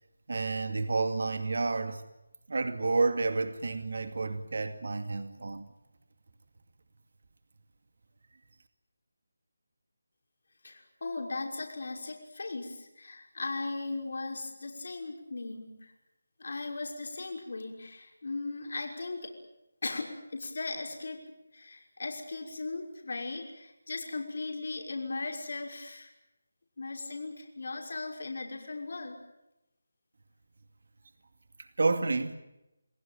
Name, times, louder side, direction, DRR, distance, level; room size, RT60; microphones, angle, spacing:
voice 1, 0.3-2.0 2.5-5.6 31.8-32.3, right 3 dB, 65° right, 2.3 m, -30 dB
voice 2, 10.6-15.9 16.4-19.3 19.8-21.2 21.5-26.1 26.8-29.2, left 3 dB, 60° left, 5.9 m, -38 dB
28.0 x 18.0 x 9.3 m
figure-of-eight pair, 165°, 0 cm